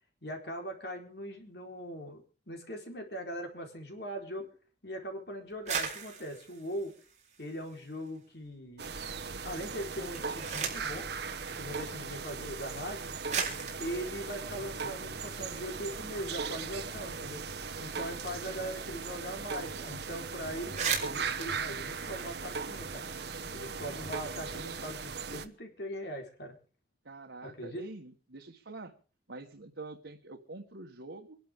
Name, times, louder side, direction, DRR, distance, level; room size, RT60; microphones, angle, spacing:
voice 1, 0.2-4.5 4.8-6.9 7.4-8.9 9.4-11.1 11.6-13.0 13.8-17.4 17.8-23.0 23.5-26.5 27.4-27.9, equal, 65° left, 3 dB, 4.3 m, -40 dB
sound 1, 5.5-8.1 8.4-9.1 9.9-11.0 12.0-12.1 12.9-13.0 13.3-15.6 16.0-16.1 16.3-18.9 19.2-19.3 19.6-19.9 20.2-20.3 20.6-22.8, right 6 dB, 40° right, 3.8 m, -39 dB
sound 2, 8.8-25.5, right 5 dB, 65° right, 1.2 m, -38 dB
voice 2, 27.0-28.9 29.3-31.4, right 2 dB, 85° right, 3 dB, 1.5 m, -46 dB
26.0 x 11.5 x 3.7 m, 0.37 s
head